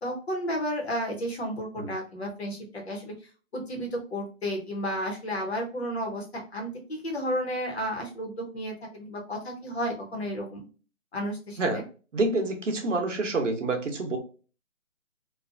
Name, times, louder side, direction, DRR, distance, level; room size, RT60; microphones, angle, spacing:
voice 1, 0.0-2.6 2.9-3.1 3.5-10.7 11.1-11.8, equal, 55° left, 1 dB, 1.0 m, -32 dB
voice 2, 12.1-14.2, right 2 dB, 65° right, 4 dB, 0.8 m, -27 dB
2.7 x 2.4 x 2.4 m, 0.36 s
figure-of-eight pair, 165°, 40 cm